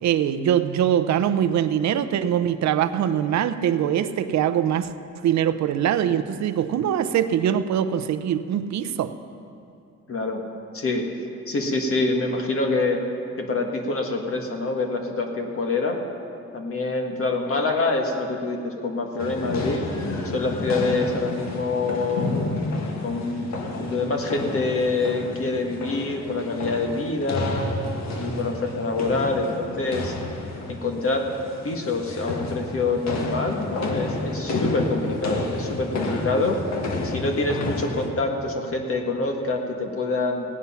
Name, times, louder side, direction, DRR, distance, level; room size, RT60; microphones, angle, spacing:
voice 1, 0.0-4.9 5.2-9.2, right 9 dB, 65° right, 12 dB, 0.7 m, -23 dB
voice 2, 10.1-10.4 10.7-11.1 11.5-13.0 13.4-16.0 16.5-19.9 20.3-22.3 23.0-27.7 28.1-30.2 30.7-31.3 31.6-36.6 37.0-40.4, left 3 dB, 45° left, 2 dB, 1.7 m, -26 dB
sound 1, 19.2-38.1, left 2 dB, 60° left, 1.6 m, -30 dB
16.0 x 9.6 x 5.7 m, 2.6 s
cardioid pair, 90°, 30 cm